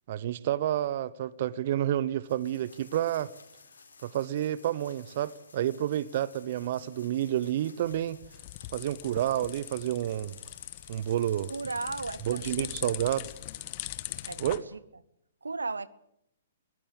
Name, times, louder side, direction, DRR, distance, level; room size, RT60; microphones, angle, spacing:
voice 1, 0.1-3.3 4.0-8.2 8.7-10.3 10.9-11.5 12.3-13.3 14.4-14.6, right 12 dB, 50° right, 0.8 m, -29 dB
sound 1, 2.2-14.6, left 5 dB, 70° left, 4.1 m, -56 dB
sound 2, 7.8-14.6, left 17 dB, 40° left, 1.3 m, -41 dB
voice 2, 11.5-13.0 14.2-14.8 15.4-15.9, right 3 dB, 80° right, 0.9 m, -36 dB
23.0 x 17.5 x 8.6 m
figure-of-eight pair, 120°, 0 cm